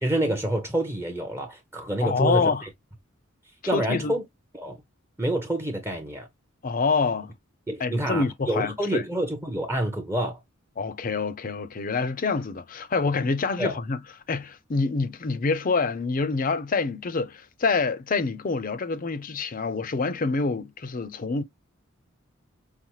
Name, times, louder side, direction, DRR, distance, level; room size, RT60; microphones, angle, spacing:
voice 1, 0.0-2.7 3.7-4.2 4.5-4.8 5.2-6.3 7.7-10.4 13.6-13.8, right 1 dB, 10° right, 0.6 m, -27 dB
voice 2, 2.0-2.6 3.7-4.1 6.6-7.3 7.8-9.0 10.8-14.0 14.3-21.4, left 4 dB, 40° left, 0.5 m, -26 dB
5.5 x 2.1 x 3.0 m
head